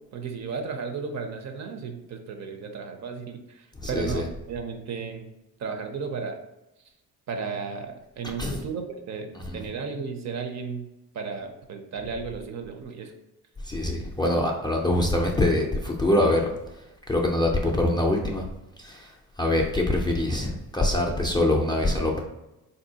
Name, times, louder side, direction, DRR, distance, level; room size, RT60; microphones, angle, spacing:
voice 1, 0.1-5.3 5.6-6.4 7.3-10.9 11.1-13.1, right 5 dB, 50° right, 5 dB, 0.5 m, -34 dB
voice 2, 3.8-4.3 8.4-8.6 9.5-9.6 13.6-16.5 17.1-18.5 18.8-19.1 19.4-22.2, left 1 dB, 10° left, 0 dB, 0.4 m, -24 dB
3.6 x 2.7 x 2.7 m, 0.95 s
cardioid pair, 105°, 37 cm